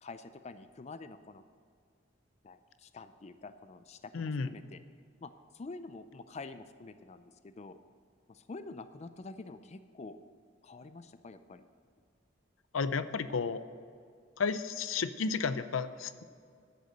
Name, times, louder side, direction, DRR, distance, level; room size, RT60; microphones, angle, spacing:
voice 1, 0.0-1.4 2.4-4.8 5.2-7.8 8.3-10.2 10.6-11.7, left 3 dB, 35° left, 11 dB, 0.4 m, -47 dB
voice 2, 4.1-4.5 12.7-13.6 14.4-16.2, left 5 dB, 90° left, 13 dB, 0.6 m, -32 dB
10.5 x 8.1 x 6.7 m, 2.3 s
head